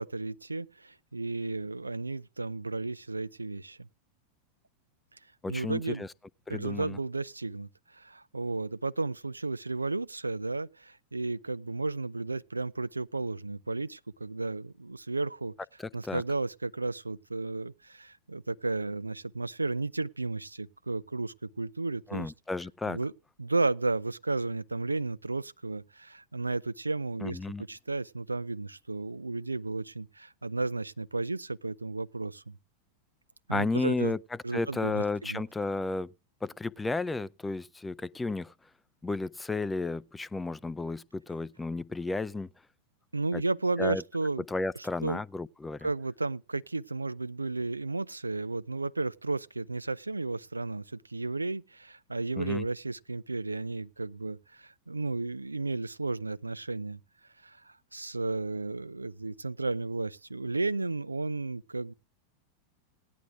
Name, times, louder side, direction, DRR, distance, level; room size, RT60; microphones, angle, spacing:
voice 1, 0.0-3.9 5.5-6.0 6.5-7.7 7.9-15.5 15.9-22.3 22.9-23.1 23.4-27.4 27.7-32.6 33.5-34.2 34.4-35.4 43.1-44.4 44.8-45.2 45.8-57.0 57.4-61.9, right 3 dB, 80° right, 0.5 m, -33 dB
voice 2, 5.4-6.1 6.5-7.0 15.8-16.2 22.1-23.0 27.2-27.6 33.5-34.2 34.5-36.1 36.4-38.5 39.0-42.5 43.3-43.4 43.8-44.0 44.5-45.9 52.4-52.7, left 3 dB, 10° left, 0.5 m, -33 dB
18.5 x 10.5 x 2.4 m
figure-of-eight pair, 90°, 0 cm